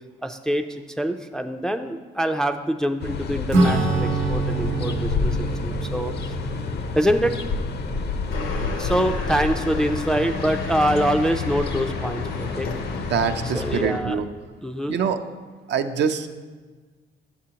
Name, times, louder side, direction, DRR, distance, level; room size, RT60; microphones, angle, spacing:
voice 1, 0.2-6.3 6.9-7.4 8.8-12.7 13.5-14.2 14.6-15.0, equal, 5° left, 5 dB, 0.3 m, -25 dB
sound 1, 3.0-13.9, left 4 dB, 55° left, 0.6 m, -29 dB
Acoustic guitar / Strum, 3.5-9.4, right 3 dB, 85° right, 0.9 m, -27 dB
sound 2, 8.3-14.0, left 3 dB, 80° left, 0.9 m, -34 dB
voice 2, 13.0-14.3 14.9-15.2 15.7-16.3, right 7 dB, 60° right, 8 dB, 0.5 m, -24 dB
8.8 x 6.8 x 2.8 m, 1.4 s
cardioid pair, 90°, 20 cm